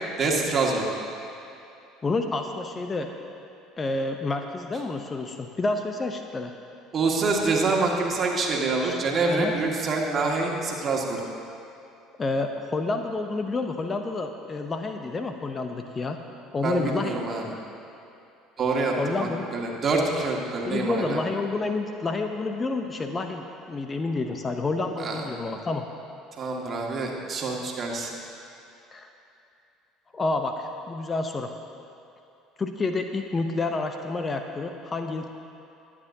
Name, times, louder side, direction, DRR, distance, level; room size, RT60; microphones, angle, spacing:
voice 1, 0.2-0.9 6.9-11.2 16.6-17.4 18.6-21.2 25.0-25.2 26.4-28.1, right 3 dB, 35° right, -1 dB, 2.0 m, -26 dB
voice 2, 2.0-3.1 3.8-6.5 8.8-9.0 9.3-9.5 12.2-16.2 16.5-17.6 19.0-19.5 20.7-25.8 28.9-29.1 30.1-31.5 32.6-35.3, left 3 dB, 25° left, 5 dB, 0.7 m, -29 dB
23.0 x 8.5 x 2.8 m, 2.7 s
figure-of-eight pair, 60°, 0 cm